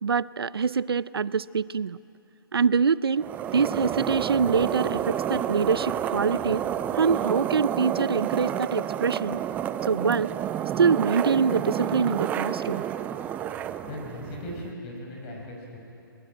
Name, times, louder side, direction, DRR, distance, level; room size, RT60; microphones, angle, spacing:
voice 1, 0.0-2.0 2.5-6.6 6.9-9.4 9.8-10.3 10.8-12.8, right 6 dB, 85° right, 20 dB, 0.6 m, -24 dB
sound 1, 3.2-14.7, right 10 dB, 10° right, 0.5 m, -30 dB
voice 2, 13.4-15.8, left 1 dB, 30° left, 0 dB, 5.5 m, -39 dB
22.5 x 21.0 x 9.1 m, 3.0 s
hypercardioid pair, 150°, 12 cm